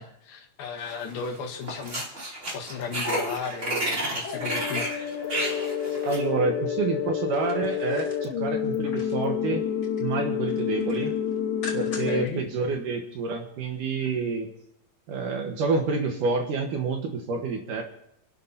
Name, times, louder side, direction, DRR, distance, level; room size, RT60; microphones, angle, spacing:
voice 1, 0.0-2.0 2.5-4.9 11.8-12.4, left 5 dB, 90° left, 1 dB, 3.5 m, -35 dB
sound 1, 0.9-1.4 1.6-6.2, right 1 dB, 20° right, 2.7 m, -31 dB
Asian sinewaves, 4.2-12.2, left 8 dB, 70° left, 2.8 m, -29 dB
voice 2, 6.1-9.6 10.0-11.1 11.7-14.5 15.1-17.8, right 4 dB, 70° right, 2 dB, 2.7 m, -28 dB
sound 2, 7.2-9.3 9.6-10.1 10.5-12.3 12.7-12.8, left 4 dB, 35° left, 3.3 m, -43 dB
29.5 x 12.5 x 2.8 m, 0.75 s
omnidirectional pair, 4.2 m